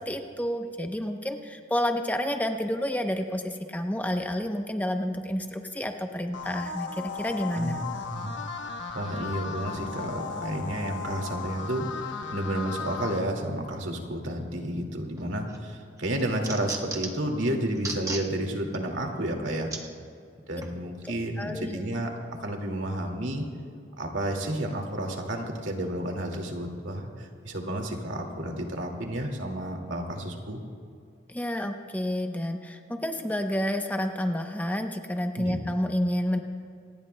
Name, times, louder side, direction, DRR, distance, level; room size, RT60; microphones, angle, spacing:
voice 1, 0.0-7.8 21.4-21.8 31.3-36.4, equal, 10° left, 5 dB, 0.7 m, -29 dB
sound 1, 6.3-13.2, left 5 dB, 80° left, 1.1 m, -36 dB
voice 2, 8.9-19.7 20.5-22.1 22.4-23.4 24.0-30.6 35.4-35.6, right 1 dB, 85° right, 2 dB, 2.1 m, -31 dB
sound 2, 15.2-15.6 16.0-17.3 17.8-18.3 18.7-18.8 19.7-19.8 20.6-20.7, right 3 dB, 15° right, 1.0 m, -35 dB
26.0 x 19.5 x 2.2 m, 2.4 s
head